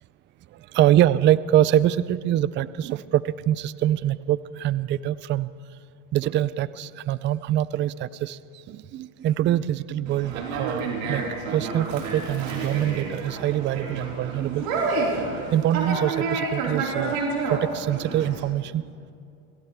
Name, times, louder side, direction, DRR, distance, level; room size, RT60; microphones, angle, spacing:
voice 1, 0.5-5.5 6.1-8.4 8.7-11.2 11.5-14.7 15.3-18.8, right 12 dB, 30° right, 18 dB, 0.4 m, -24 dB
Conversation, 10.1-18.4, right 3 dB, 75° right, 4.7 m, -29 dB
26.0 x 16.0 x 3.5 m, 2.5 s
supercardioid pair, 105°, 40 cm